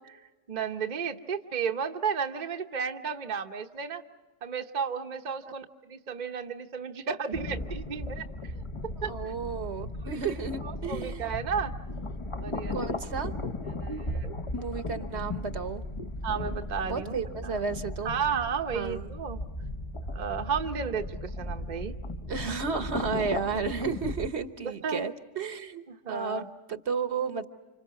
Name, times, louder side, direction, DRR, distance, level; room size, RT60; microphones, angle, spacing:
voice 1, 0.5-4.0 4.4-8.6 9.0-9.1 10.0-10.4 10.6-11.7 12.4-12.9 13.7-14.3 16.2-17.6 18.0-19.4 20.1-22.0 22.3-22.5 24.6-25.1 25.9-26.5, right 6 dB, 40° right, 5 dB, 1.0 m, -33 dB
sound 1, 7.3-24.3, left 1 dB, 25° left, 0.9 m, -36 dB
voice 2, 9.1-11.3 12.7-13.3 14.5-15.8 16.8-18.2 18.7-19.1 22.2-27.4, right 5 dB, 60° right, 10 dB, 1.3 m, -33 dB
30.0 x 26.5 x 5.9 m, 1.2 s
omnidirectional pair, 1.3 m